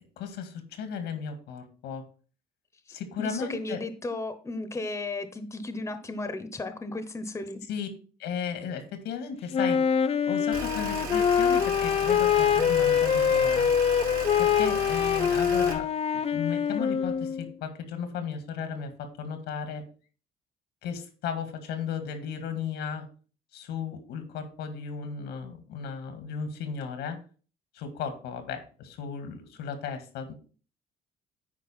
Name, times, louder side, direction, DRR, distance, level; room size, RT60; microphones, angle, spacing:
voice 1, 0.2-2.0 2.9-3.8 7.7-7.9 8.2-9.8 10.3-13.7 14.4-19.8 20.8-23.1 23.5-27.2 27.7-30.3, left 6 dB, 85° left, 7 dB, 1.9 m, -35 dB
voice 2, 2.9-7.6, left 2 dB, 15° left, 10 dB, 1.0 m, -35 dB
Wind instrument woodwind instrument, 9.5-17.5, left 8 dB, 35° left, 0.6 m, -24 dB
sound 1, 10.5-15.7, right 4 dB, 60° right, 2.8 m, -36 dB
9.7 x 4.6 x 4.4 m, 0.39 s
cardioid pair, 110°, 17 cm